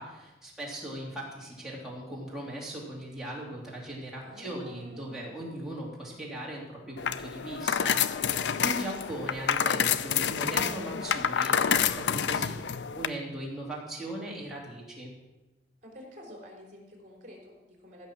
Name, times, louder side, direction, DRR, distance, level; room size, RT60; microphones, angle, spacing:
voice 1, 0.0-8.2 8.6-15.1, right 1 dB, 5° right, -5 dB, 3.1 m, -39 dB
voice 2, 4.2-5.1 8.2-8.8 15.8-18.1, equal, 45° right, -1 dB, 3.6 m, -48 dB
sound 1, 7.0-13.1, left 8 dB, 75° left, 0.5 m, -28 dB
15.5 x 6.2 x 6.1 m, 1.0 s
head